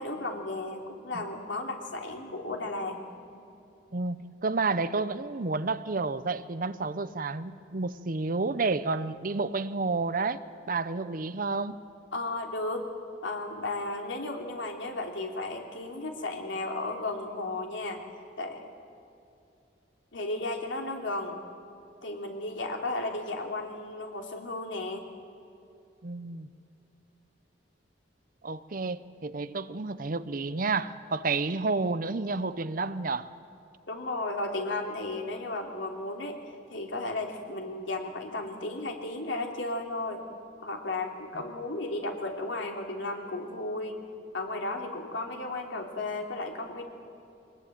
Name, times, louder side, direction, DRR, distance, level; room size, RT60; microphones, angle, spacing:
voice 1, 0.0-3.0 3.3-3.4 12.1-12.9 13.2-18.0 18.4-18.7 20.1-21.4 22.0-25.0 33.9-36.4 36.7-40.2 40.6-44.0 44.3-46.8, left 2 dB, 85° left, 2 dB, 3.1 m, -34 dB
voice 2, 3.9-10.4 10.7-11.8 26.0-26.5 28.4-33.3, right 3 dB, 50° right, 14 dB, 0.8 m, -30 dB
23.0 x 20.0 x 9.2 m, 2.6 s
head